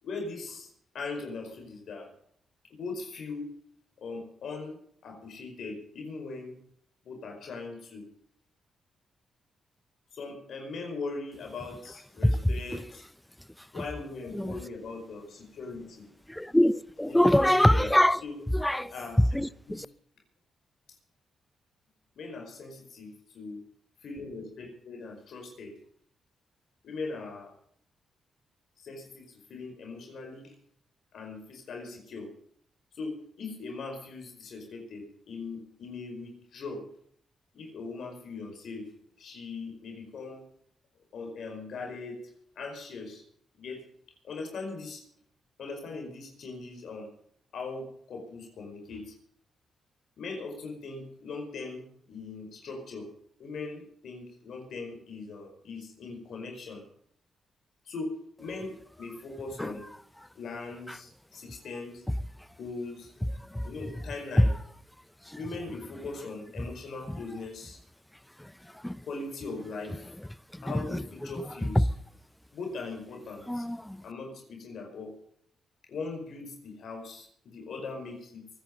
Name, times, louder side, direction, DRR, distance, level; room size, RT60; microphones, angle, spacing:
voice 1, 0.0-2.1 2.7-3.5 4.0-4.8 5.0-6.5 7.1-8.0 10.1-13.0 13.7-16.1 17.1-17.9 18.2-18.3 18.7-19.2 19.7-19.8 22.2-23.6 24.0-25.7 26.8-27.5 28.8-30.5 31.1-32.3 32.9-36.9 37.5-38.9 39.2-40.5 41.1-42.3 42.6-43.2 43.6-43.8 44.2-45.0 45.6-47.1 47.5-49.2 50.2-53.1 53.4-56.8 57.9-58.1 58.4-59.9 60.4-62.0 62.6-63.1 63.6-64.5 65.4-67.8 69.0-70.0 70.6-71.9 72.5-73.7 74.0-75.1 75.9-78.5, left 3 dB, 70° left, 5.2 m, -40 dB
voice 2, 12.2-12.8 13.6-13.8 14.3-14.7 16.3-18.2 18.5-19.9 59.6-59.8 60.9-61.0 63.4-63.7 64.4-64.5 65.3-65.4 66.6-66.7 67.1-67.2 68.4-69.1 70.5-71.0 71.5-71.9 73.5-74.0, left 1 dB, 5° left, 0.8 m, -25 dB
23.5 x 10.0 x 5.4 m
cardioid pair, 65°, 0 cm